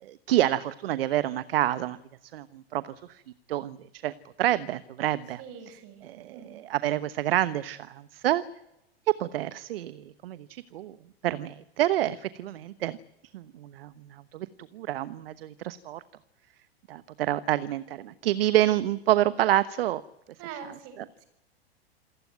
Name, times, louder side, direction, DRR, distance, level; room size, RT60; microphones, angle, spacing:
voice 1, 0.0-2.0 2.3-2.8 3.1-3.2 3.5-8.4 9.2-11.0 11.2-13.0 13.3-14.5 14.7-16.0 16.9-20.0 20.5-21.1, right 13 dB, 65° right, 15 dB, 1.2 m, -28 dB
voice 2, 5.4-6.0 6.3-6.6 20.4-21.0, right 7 dB, 50° right, 9 dB, 7.4 m, -43 dB
28.0 x 15.5 x 9.3 m, 0.89 s
hypercardioid pair, 100°, 31 cm